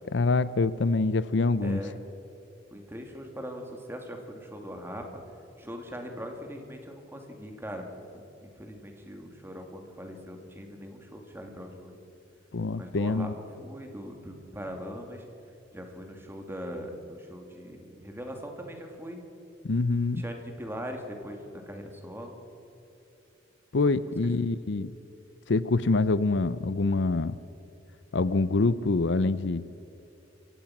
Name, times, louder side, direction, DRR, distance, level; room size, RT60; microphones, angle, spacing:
voice 1, 0.1-1.8 12.5-13.3 19.6-20.2 23.7-24.9 25.5-27.3 28.1-29.7, left 3 dB, 70° left, 16 dB, 0.6 m, -25 dB
voice 2, 1.6-2.0 2.7-5.2 5.6-12.0 12.8-15.2 15.7-19.2 20.2-22.4 23.8-24.3, equal, 15° right, 3 dB, 2.6 m, -41 dB
28.0 x 16.5 x 6.0 m, 2.9 s
head